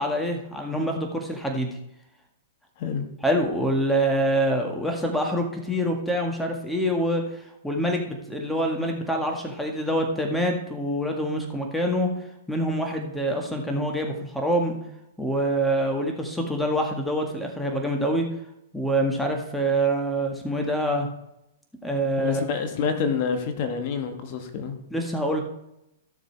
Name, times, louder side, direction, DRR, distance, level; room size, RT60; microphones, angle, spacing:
voice 1, 0.0-1.8 3.2-7.2 7.6-12.1 12.5-14.7 15.2-18.3 18.7-21.1 21.8-22.4 24.9-25.4, right 1 dB, 5° left, 1 dB, 1.8 m, -25 dB
voice 2, 22.2-24.8, left 6 dB, 45° left, 6 dB, 1.6 m, -27 dB
14.5 x 6.7 x 4.6 m, 0.83 s
hypercardioid pair, 135°, 0 cm